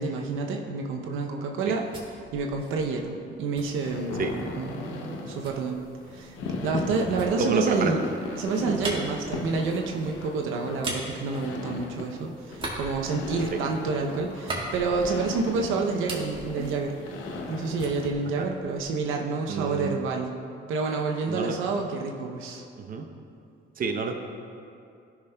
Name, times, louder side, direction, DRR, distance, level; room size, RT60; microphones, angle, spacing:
voice 1, 0.0-1.8 2.3-5.8 6.1-6.4 6.6-8.0 8.4-17.0 17.5-20.3 20.7-22.6, right 4 dB, 85° right, 1 dB, 0.7 m, -28 dB
sound 1, 1.5-4.5 5.4-12.1 12.5-15.5 15.8-17.5 17.8-19.1, right 1 dB, 25° right, 1.6 m, -40 dB
sound 2, 3.7-18.1, left 3 dB, 85° left, 0.7 m, -37 dB
voice 2, 7.4-7.9 13.5-13.6 18.4-18.5 19.5-19.9 21.3-21.6 22.8-23.0 23.8-24.2, right 4 dB, 45° right, 4 dB, 0.7 m, -28 dB
13.0 x 5.9 x 2.2 m, 2.5 s
cardioid pair, 90°, 20 cm